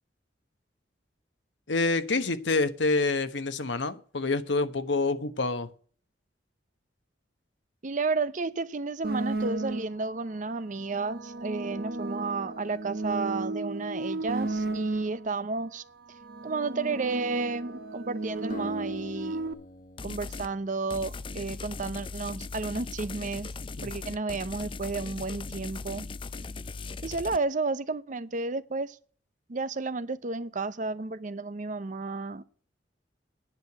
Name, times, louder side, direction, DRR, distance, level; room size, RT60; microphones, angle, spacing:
voice 1, 1.7-5.7 23.8-23.9, left 3 dB, 80° left, 1.1 m, -27 dB
voice 2, 7.8-15.8 16.4-19.4 20.0-23.5 23.8-26.1 27.0-29.0 29.5-32.4, right 3 dB, 45° right, 0.7 m, -32 dB
sound 1, 9.0-10.1 10.9-15.4 16.1-19.5, right 2 dB, 60° right, 1.1 m, -34 dB
Acoustic guitar, 18.5-22.1, left 1 dB, 50° left, 1.0 m, -46 dB
sound 2, 20.0-20.5 20.9-27.4, left 4 dB, 30° left, 0.5 m, -39 dB
10.5 x 6.5 x 8.0 m
head